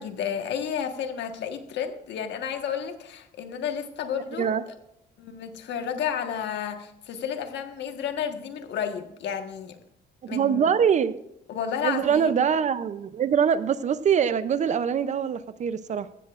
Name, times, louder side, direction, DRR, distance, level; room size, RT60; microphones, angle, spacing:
voice 1, 0.0-4.7 5.2-9.8 10.3-10.7 11.5-12.3, left 8 dB, 70° left, 6 dB, 1.4 m, -32 dB
voice 2, 10.2-11.1 11.8-16.1, right 7 dB, 40° right, 14 dB, 0.5 m, -23 dB
15.5 x 14.5 x 2.5 m, 0.80 s
cardioid pair, 145°, 19 cm